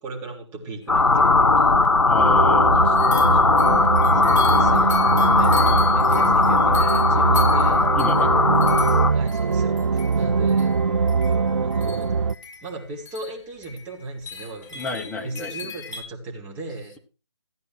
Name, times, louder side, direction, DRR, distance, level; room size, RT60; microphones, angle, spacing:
voice 1, 0.0-1.7 4.1-7.9 9.1-10.7 11.6-12.1 12.6-17.0, right 2 dB, 10° right, -1 dB, 3.4 m, -37 dB
sound 1, 0.9-9.1, left 3 dB, 85° left, 1.6 m, -18 dB
sound 2, 1.2-1.3 1.6-1.7 2.9-16.0, left 6 dB, 40° left, 7.7 m, -39 dB
voice 2, 2.1-3.3 8.0-8.3 10.9-11.0 14.7-15.5, left 3 dB, 5° left, 3 dB, 1.1 m, -32 dB
sound 3, 2.2-12.3, right 5 dB, 80° right, 0.7 m, -23 dB
15.5 x 9.4 x 4.5 m, 0.34 s
figure-of-eight pair, 160°, 15 cm